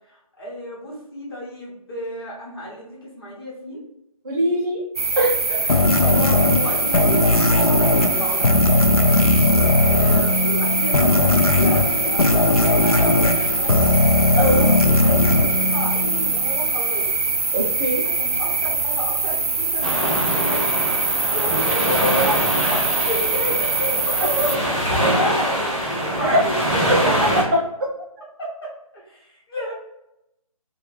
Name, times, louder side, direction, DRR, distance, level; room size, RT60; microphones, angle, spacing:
voice 1, 0.1-3.8 5.5-9.1 9.8-13.9 14.8-17.1 18.0-20.7 21.2-22.4 23.0-27.1 28.4-29.7, equal, 40° left, -4 dB, 1.2 m, -32 dB
voice 2, 4.2-4.8 5.2-5.3 14.4-14.7 17.5-18.0 22.6-22.8 26.2-26.4 26.9-27.0 27.5-27.9, right 1 dB, 35° right, -3 dB, 0.4 m, -21 dB
sound 1, 5.0-24.6, right 4 dB, 90° right, 0.5 m, -23 dB
sound 2, 5.7-16.5, left 2 dB, 80° left, 0.5 m, -18 dB
sound 3, 19.8-27.4, equal, ahead, 0.8 m, -24 dB
3.0 x 2.3 x 3.1 m, 0.85 s
figure-of-eight pair, 150°, 19 cm